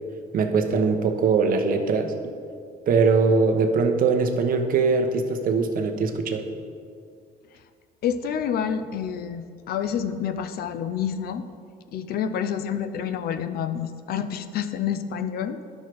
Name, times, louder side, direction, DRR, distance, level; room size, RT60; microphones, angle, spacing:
voice 1, 0.3-2.1 2.9-6.4, right 4 dB, 55° right, 5 dB, 1.0 m, -21 dB
voice 2, 8.0-11.4 11.9-15.6, left 8 dB, 65° left, 10 dB, 0.6 m, -28 dB
9.9 x 6.5 x 4.7 m, 2.3 s
cardioid pair, 110°, 17 cm